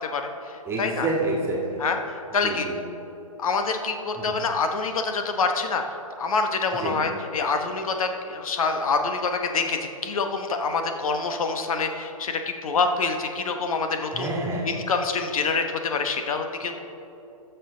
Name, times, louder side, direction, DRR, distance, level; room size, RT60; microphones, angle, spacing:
voice 1, 0.7-1.8 2.4-2.8 4.1-4.3 6.8-6.9 14.1-14.6, right 2 dB, 15° right, -2 dB, 1.7 m, -28 dB
voice 2, 1.8-2.7 3.4-5.8 6.2-14.3 14.6-16.8, left 4 dB, 65° left, 6 dB, 0.9 m, -26 dB
14.0 x 6.8 x 3.8 m, 3.0 s
hypercardioid pair, 140°, 19 cm